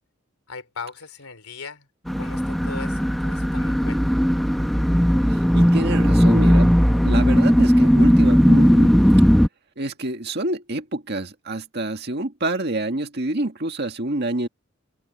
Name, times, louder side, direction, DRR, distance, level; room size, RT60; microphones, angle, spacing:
voice 1, 0.5-1.9 2.1-4.1, left 5 dB, 85° left, 3.4 m, -38 dB
sound 1, 2.1-9.5, equal, ahead, 0.8 m, -17 dB
voice 2, 5.3-6.7 7.0-8.9 9.8-14.5, right 2 dB, 50° right, 1.9 m, -27 dB
head